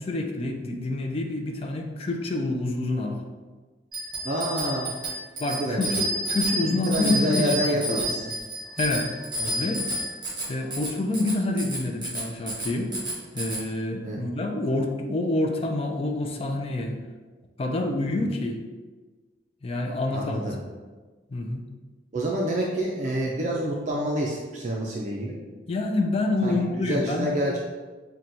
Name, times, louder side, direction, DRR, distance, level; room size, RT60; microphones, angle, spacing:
voice 1, 0.0-3.2 5.4-8.0 8.8-9.8 10.5-12.9 13.3-17.0 17.6-18.6 19.6-20.5 21.3-21.6 25.7-27.3, left 2 dB, 35° left, 3 dB, 0.4 m, -27 dB
Bicycle bell, 3.9-13.6, right 1 dB, 25° right, 1.0 m, -30 dB
voice 2, 4.2-4.9 5.6-5.9 6.7-8.3 9.4-9.5 14.0-14.2 20.1-20.6 22.1-25.3 26.4-27.6, right 1 dB, 45° right, -2 dB, 0.4 m, -28 dB
5.8 x 2.2 x 2.6 m, 1.3 s
head